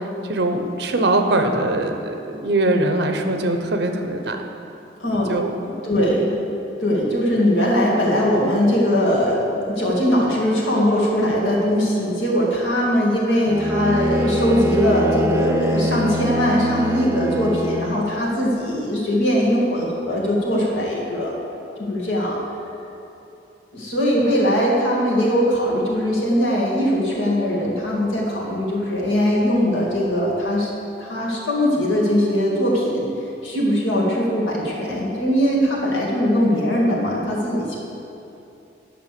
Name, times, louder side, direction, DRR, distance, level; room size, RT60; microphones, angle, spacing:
voice 1, 0.3-4.4 5.1-5.5 5.9-6.1 24.2-24.4, right 2 dB, 60° right, 5 dB, 0.8 m, -22 dB
voice 2, 5.0-5.3 5.6-6.4 6.8-21.3 21.8-22.4 23.7-30.7 31.0-33.1 33.4-37.8, equal, 90° left, -4 dB, 2.2 m, -20 dB
Bowed string instrument, 13.5-18.3, equal, 15° right, 0.4 m, -24 dB
10.0 x 5.9 x 6.8 m, 2.8 s
head